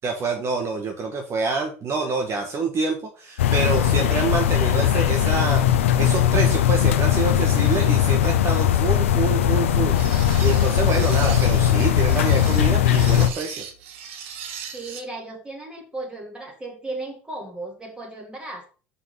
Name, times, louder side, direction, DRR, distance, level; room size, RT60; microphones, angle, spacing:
voice 1, 0.0-13.6, right 4 dB, 40° right, 3 dB, 1.6 m, -27 dB
sound 1, 3.4-13.3, left 10 dB, 90° left, 0.7 m, -19 dB
sound 2, 9.9-15.0, right 7 dB, 80° right, 1.2 m, -38 dB
voice 2, 14.7-18.7, right 2 dB, 15° right, 1 dB, 3.0 m, -35 dB
5.7 x 5.7 x 5.7 m, 0.38 s
hypercardioid pair, 85°, 7 cm